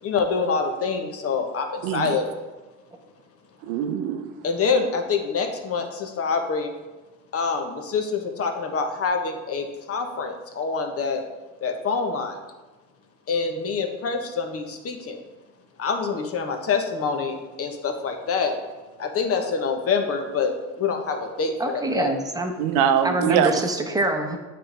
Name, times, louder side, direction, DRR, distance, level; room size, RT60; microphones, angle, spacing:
voice 1, 0.0-2.2 4.4-6.7 7.3-11.2 11.6-12.4 13.3-15.2 15.8-18.6 19.0-22.1, left 5 dB, 40° left, 4 dB, 1.0 m, -26 dB
voice 2, 1.8-2.2 3.6-4.3 22.6-23.7, right 8 dB, 70° right, 9 dB, 0.7 m, -22 dB
voice 3, 21.6-22.5 23.0-24.4, right 2 dB, 10° right, 3 dB, 0.9 m, -25 dB
9.0 x 3.4 x 3.3 m, 1.2 s
hypercardioid pair, 75°, 36 cm